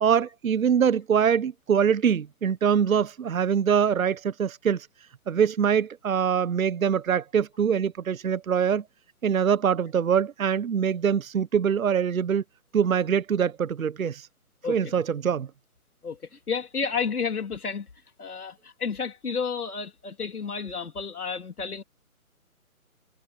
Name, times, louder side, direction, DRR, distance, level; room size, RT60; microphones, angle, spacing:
voice 1, 0.0-4.9 5.3-8.8 9.2-12.4 12.7-14.3 14.7-15.5, right 7 dB, 70° right, 0.9 m, -24 dB
voice 2, 16.0-17.9 18.2-21.8, left 5 dB, 85° left, 3.4 m, -31 dB
hypercardioid pair, 175°, 44 cm